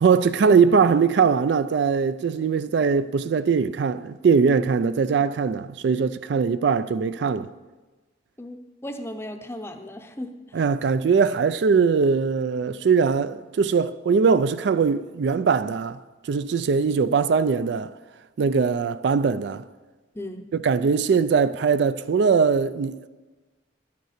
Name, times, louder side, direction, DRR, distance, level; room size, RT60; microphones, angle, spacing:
voice 1, 0.0-7.5 10.5-16.0 16.3-17.9 18.4-19.6 20.6-23.1, right 5 dB, 65° right, 0.3 m, -21 dB
voice 2, 8.4-10.6 20.1-20.5, left 1 dB, 15° left, 0.6 m, -36 dB
11.0 x 6.7 x 6.5 m
head